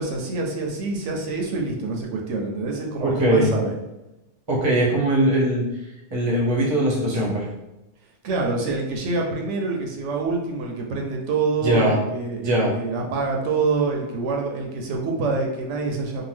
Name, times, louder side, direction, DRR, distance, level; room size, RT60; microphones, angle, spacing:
voice 1, 0.0-3.7 8.2-16.2, right 3 dB, 80° right, 1 dB, 0.9 m, -26 dB
voice 2, 3.0-3.5 4.5-5.7 6.1-7.5 11.6-12.0 12.4-12.7, right 1 dB, 30° right, -4 dB, 0.7 m, -20 dB
2.8 x 2.1 x 3.3 m, 0.96 s
omnidirectional pair, 1.2 m